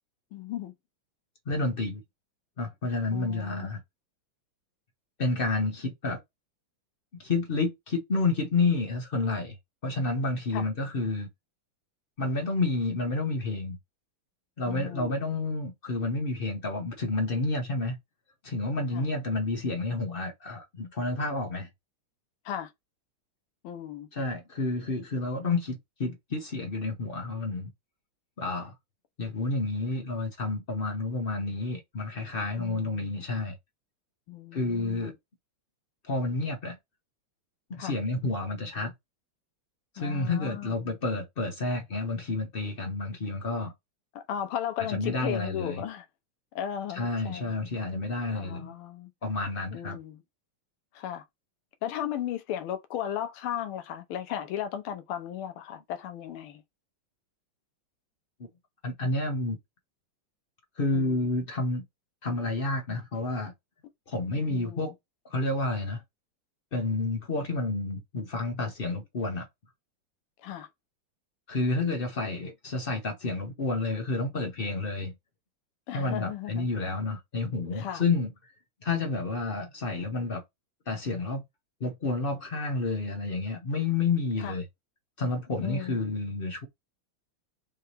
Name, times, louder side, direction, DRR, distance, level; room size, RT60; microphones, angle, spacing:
voice 1, 0.3-0.7 3.1-3.7 10.5-10.7 14.7-15.2 18.9-19.0 22.4-22.7 23.6-24.1 32.6-33.1 34.3-35.1 37.8-38.0 40.0-40.7 44.1-46.1 46.5-47.5 48.3-49.1 49.7-50.2 50.9-51.2 51.8-56.6 60.9-61.2 64.5-64.9 70.4-70.7 75.9-76.7 77.7-78.0 84.4-84.5 85.6-86.1, left 10 dB, 90° left, 1.6 m, -36 dB
voice 2, 1.5-2.0 2.6-3.8 5.2-6.2 7.2-9.6 9.8-11.3 12.2-13.8 14.6-18.0 18.4-21.7 24.1-27.7 28.4-28.7 29.2-33.6 34.5-35.1 36.0-36.8 37.7-38.9 39.9-43.7 44.8-45.8 46.9-48.7 49.2-50.0 58.4-58.5 58.8-59.6 60.8-61.8 62.2-63.5 64.1-64.9 65.2-66.0 66.7-69.5 71.5-75.1 75.9-78.3 78.8-80.4 80.9-81.4 81.8-84.7 85.2-86.7, left 3 dB, 55° left, 0.6 m, -30 dB
5.5 x 2.9 x 3.2 m
omnidirectional pair, 2.3 m